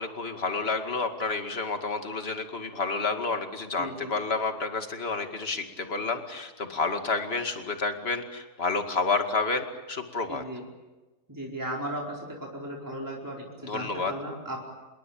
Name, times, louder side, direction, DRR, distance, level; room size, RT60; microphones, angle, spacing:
voice 1, 0.0-10.4 13.6-14.1, left 4 dB, 40° left, 6 dB, 2.5 m, -30 dB
voice 2, 3.8-4.1 10.3-10.6 11.3-14.7, right 1 dB, 10° right, -2 dB, 4.7 m, -36 dB
28.0 x 21.5 x 8.8 m, 1.1 s
omnidirectional pair, 1.7 m